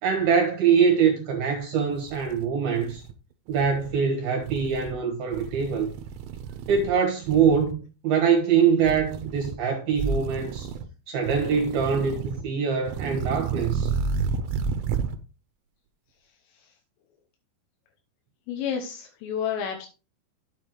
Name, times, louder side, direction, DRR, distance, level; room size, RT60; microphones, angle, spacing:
voice 1, 0.0-3.0 3.5-5.9 6.7-10.7 11.1-13.9, right 6 dB, 65° right, 2.5 m, -23 dB
sound 1, 1.5-1.6 2.0-3.1 3.5-3.9 4.4-5.0 5.3-6.9 7.2-7.7 8.8-9.6 9.9-10.9 11.2-12.4 12.8-15.2, right 5 dB, 85° right, 3.2 m, -31 dB
voice 2, 18.5-19.9, left 8 dB, 80° left, 3.4 m, -30 dB
9.6 x 8.6 x 3.1 m
omnidirectional pair, 5.9 m